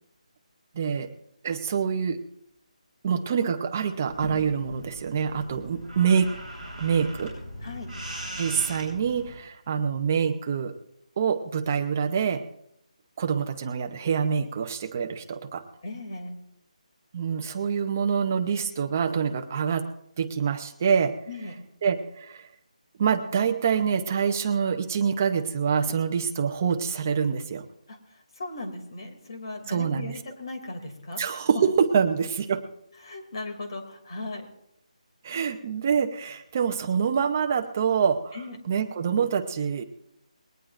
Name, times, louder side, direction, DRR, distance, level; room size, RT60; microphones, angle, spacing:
voice 1, 0.7-1.1 1.4-2.2 3.0-6.3 6.8-7.4 8.4-10.7 11.2-12.4 13.2-15.6 17.1-19.9 20.2-21.2 21.8-22.5 23.0-27.6 29.7-30.2 31.2-32.7 35.2-38.4 38.7-39.8, right 6 dB, 20° right, 7 dB, 0.7 m, -26 dB
sound 1, 4.1-9.4, right 1 dB, 10° left, 6.0 m, -39 dB
voice 2, 15.8-16.4 21.3-21.6 27.9-31.2 33.0-34.5 38.3-38.6, left 2 dB, 35° left, 3 dB, 2.7 m, -37 dB
21.0 x 18.5 x 2.5 m, 0.77 s
hypercardioid pair, 180°, 4 cm